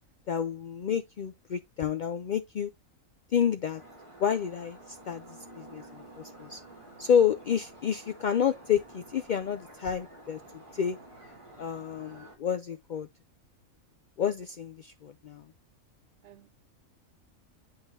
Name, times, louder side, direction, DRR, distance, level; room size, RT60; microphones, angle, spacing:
voice 1, 0.3-2.7 3.3-3.8 4.2-6.6 7.0-10.4 10.7-11.0 11.6-13.1 14.2-15.5, left 8 dB, 75° left, 0.4 m, -29 dB
sound 1, 3.8-12.4, right 1 dB, 25° right, 2.0 m, -50 dB
voice 2, 6.6-7.0 16.2-16.5, right 11 dB, 65° right, 0.9 m, -56 dB
10.0 x 3.7 x 2.6 m
omnidirectional pair, 1.4 m